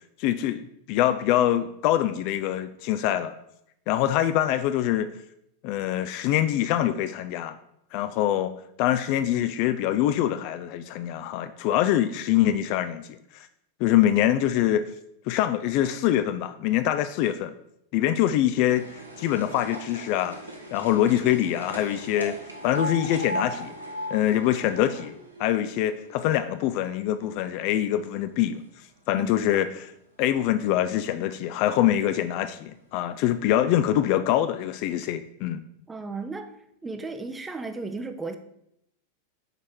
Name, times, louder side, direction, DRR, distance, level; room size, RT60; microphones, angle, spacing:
voice 1, 0.2-3.3 3.9-5.1 5.6-7.6 7.9-13.5 13.8-14.9 15.3-17.5 17.9-18.9 19.2-20.4 20.7-22.4 22.6-23.7 24.1-25.1 25.4-28.6 29.1-29.9 30.2-35.6, left 12 dB, 45° left, 11 dB, 0.3 m, -24 dB
sound 1, 18.7-26.9 27.3-28.2 28.9-29.0 29.3-29.4 29.6-29.7 30.6-30.7 31.3-31.4 32.1-32.2 32.6-32.7, right 1 dB, 80° right, 1.0 m, -38 dB
voice 2, 35.9-36.6 36.8-38.4, right 3 dB, 10° right, 8 dB, 0.5 m, -34 dB
5.2 x 4.6 x 4.2 m, 0.77 s
figure-of-eight pair, 90°, 0 cm